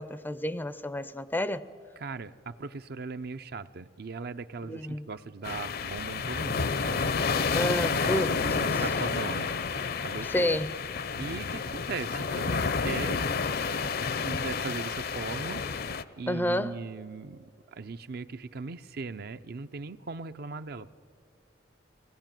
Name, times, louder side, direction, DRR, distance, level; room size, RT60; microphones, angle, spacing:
voice 1, 0.0-1.7 4.6-5.1 7.5-8.8 10.2-10.8 16.3-16.8, left 1 dB, 10° left, 0.5 m, -30 dB
voice 2, 2.0-7.2 8.0-9.5 10.0-10.6 11.1-13.3 13.8-15.6 16.2-17.4 17.7-20.9, right 4 dB, 55° right, 0.6 m, -39 dB
sound 1, 5.4-16.0, left 5 dB, 55° left, 0.6 m, -30 dB
23.5 x 17.5 x 9.0 m
head